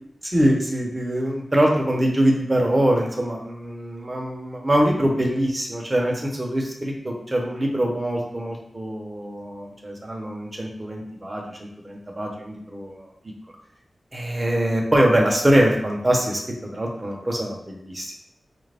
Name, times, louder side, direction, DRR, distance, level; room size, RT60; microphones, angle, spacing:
voice 1, 0.3-13.1 14.1-18.1, right 1 dB, 25° right, 0 dB, 1.0 m, -23 dB
4.8 x 2.5 x 3.4 m, 0.79 s
wide cardioid pair, 75°, 0 cm